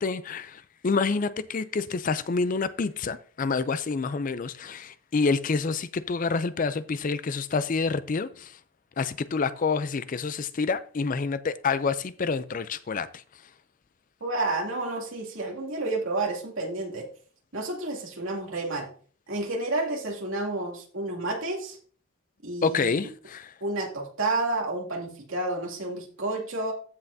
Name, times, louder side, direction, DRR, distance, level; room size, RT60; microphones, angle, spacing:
voice 1, 0.0-8.6 9.0-13.2 22.6-23.5, left 4 dB, 40° left, 0.4 m, -28 dB
voice 2, 14.2-17.1 17.5-18.9 19.3-21.8 22.4-23.1 23.6-26.7, right 2 dB, 70° right, 2.5 m, -30 dB
15.0 x 5.6 x 2.7 m
head